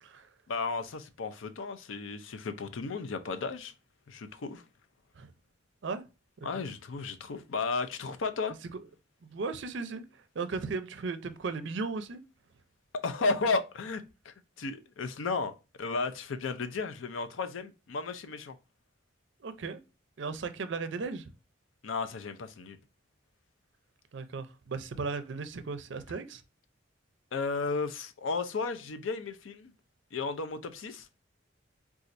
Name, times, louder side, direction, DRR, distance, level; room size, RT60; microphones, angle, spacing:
voice 1, 0.5-3.7 4.1-4.6 6.4-8.6 13.0-15.5 15.8-18.6 21.8-22.8 27.3-29.7 30.1-31.2, left 4 dB, 80° left, 0.5 m, -34 dB
voice 2, 9.2-12.2 19.4-19.8 20.2-21.3 24.1-26.4, right 4 dB, 65° right, 0.5 m, -36 dB
4.1 x 2.4 x 2.5 m
head